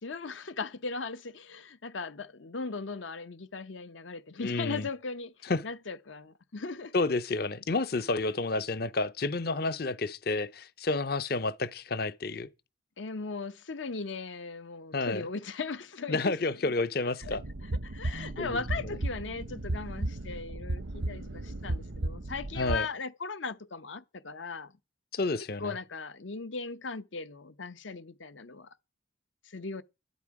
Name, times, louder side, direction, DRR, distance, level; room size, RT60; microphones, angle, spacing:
voice 1, 0.0-6.9 13.0-16.3 16.6-16.7 17.2-17.4 17.8-24.7 25.6-28.7 29.4-29.8, left 4 dB, 80° left, 0.9 m, -38 dB
voice 2, 4.4-4.9 5.5-5.6 6.9-12.5 14.9-15.2 16.1-17.4 18.4-18.6 22.6-22.9 25.1-25.8, left 3 dB, 50° left, 0.7 m, -30 dB
sound 1, 17.2-22.8, right 1 dB, 85° right, 0.9 m, -35 dB
12.5 x 11.0 x 4.8 m
head